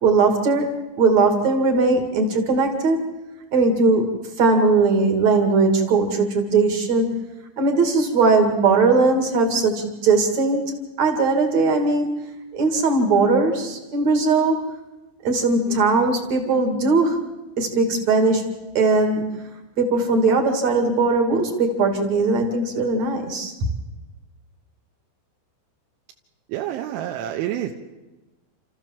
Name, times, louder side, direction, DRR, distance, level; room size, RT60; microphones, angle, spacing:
voice 1, 0.0-3.0 3.5-7.2 7.6-10.6 11.0-12.2 12.5-14.6 15.2-17.2 17.6-18.5 18.7-19.2 19.8-23.7, right 3 dB, 45° right, 5 dB, 2.6 m, -19 dB
voice 2, 26.5-27.7, right 12 dB, 80° right, 1 dB, 3.4 m, -28 dB
29.5 x 14.0 x 7.5 m, 1.1 s
omnidirectional pair, 5.9 m